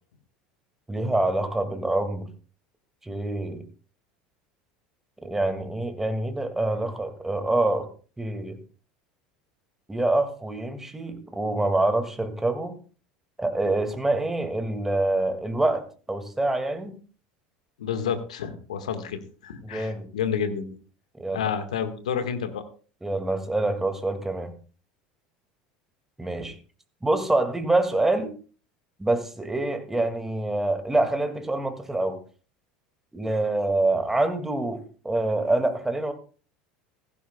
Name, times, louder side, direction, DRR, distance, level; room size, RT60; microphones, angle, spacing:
voice 1, 0.9-2.3 3.1-3.6 5.2-7.9 8.2-8.6 9.9-12.8 13.4-16.9 19.6-20.1 21.2-21.4 23.0-24.5 26.2-26.6 27.0-28.3 29.0-32.2 33.1-36.1, right 2 dB, 10° right, 7 dB, 2.1 m, -26 dB
voice 2, 17.8-20.7 21.3-22.6, left 7 dB, 80° left, 9 dB, 1.6 m, -30 dB
16.0 x 15.5 x 2.3 m, 0.38 s
hypercardioid pair, 75°, 4 cm